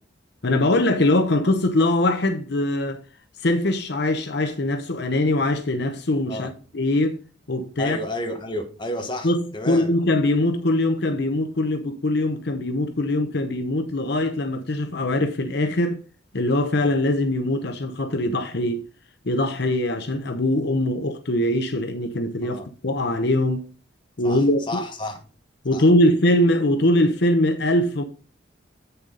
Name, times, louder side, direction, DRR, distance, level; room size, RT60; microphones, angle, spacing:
voice 1, 0.4-3.0 3.4-7.2 7.5-8.0 9.2-16.0 16.3-18.9 19.2-23.6 24.2-24.6 25.6-28.0, left 1 dB, 60° left, 0.9 m, -22 dB
voice 2, 7.8-9.9 22.4-22.7 24.2-25.2 25.7-25.8, left 1 dB, 25° left, 1.5 m, -31 dB
8.5 x 6.9 x 3.9 m
head